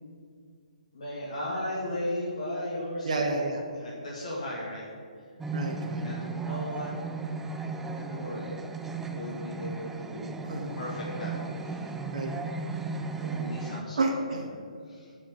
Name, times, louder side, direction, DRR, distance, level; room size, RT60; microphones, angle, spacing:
voice 1, 0.9-3.3 3.7-4.8 5.2-5.3 6.0-7.2 7.9-8.6 9.1-11.3 11.6-11.9 13.0-14.0 14.5-15.1, left 1 dB, 55° left, -6 dB, 2.1 m, -36 dB
voice 2, 3.0-3.6 5.5-6.0 10.4-10.7 12.1-12.3 14.0-14.5, right 3 dB, 55° right, 1 dB, 1.0 m, -30 dB
sound 1, 5.4-13.8, right 3 dB, 5° right, 0.3 m, -35 dB
6.1 x 5.6 x 6.9 m, 2.2 s
figure-of-eight pair, 135°, 4 cm